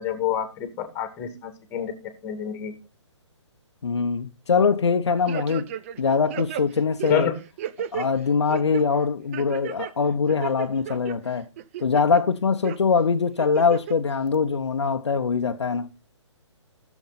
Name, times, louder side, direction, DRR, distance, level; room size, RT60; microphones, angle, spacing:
voice 1, 0.0-1.9 2.2-2.7 7.1-7.4, left 9 dB, 15° left, 1.9 m, -28 dB
voice 2, 3.8-5.7 6.0-7.3 7.9-11.5 11.8-15.9, left 5 dB, 65° left, 0.9 m, -23 dB
sound 1, 5.3-6.0 6.3-8.1 8.5-8.8 9.3-9.9 10.3-11.1 11.6-12.2 12.6-12.8 13.4-13.9 14.3-14.4, right 11 dB, 25° right, 0.5 m, -33 dB
15.0 x 7.2 x 4.1 m
figure-of-eight pair, 135°, 15 cm